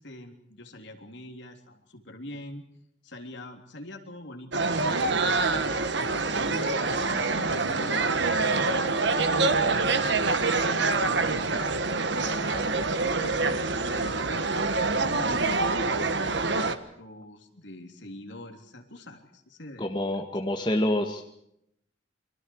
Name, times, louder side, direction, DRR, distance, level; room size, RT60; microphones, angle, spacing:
voice 1, 0.0-2.6 3.0-5.8 6.5-11.7 12.1-19.9, left 1 dB, 60° left, 3 dB, 3.5 m, -44 dB
sound 1, 4.5-16.8, right 3 dB, 60° right, 1.5 m, -26 dB
voice 2, 19.8-21.3, left 1 dB, 20° left, 3 dB, 1.7 m, -27 dB
30.0 x 24.0 x 4.8 m, 0.76 s
head